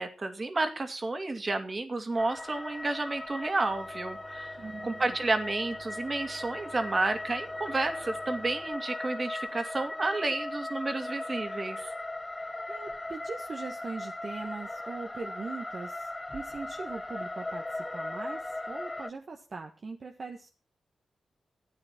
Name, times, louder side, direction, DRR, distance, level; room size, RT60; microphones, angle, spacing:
voice 1, 0.0-4.6 4.8-11.9, right 2 dB, 40° right, 7 dB, 2.7 m, -31 dB
sound 1, 2.2-19.1, left 2 dB, 20° left, 0.8 m, -38 dB
sound 2, 3.6-8.6, right 3 dB, 80° right, 3.8 m, -53 dB
voice 2, 4.6-5.0 12.4-20.5, right 4 dB, 55° right, 3 dB, 1.6 m, -41 dB
13.5 x 8.9 x 6.0 m, 0.34 s
cardioid pair, 50°, 0 cm